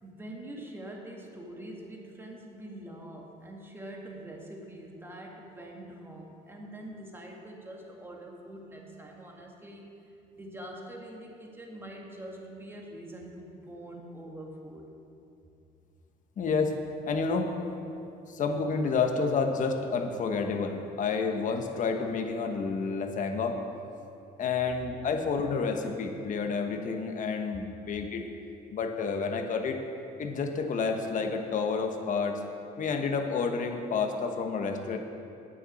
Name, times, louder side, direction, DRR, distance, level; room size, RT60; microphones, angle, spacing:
voice 1, 0.0-9.9 10.3-14.8, right 1 dB, 15° right, 0 dB, 1.9 m, -44 dB
voice 2, 16.4-16.8 17.1-17.5 18.3-23.6 24.4-28.3 28.7-29.8 30.2-32.4 32.8-35.0, left 5 dB, 50° left, 5 dB, 1.2 m, -29 dB
9.3 x 7.1 x 9.0 m, 2.7 s
cardioid pair, 110°, 17 cm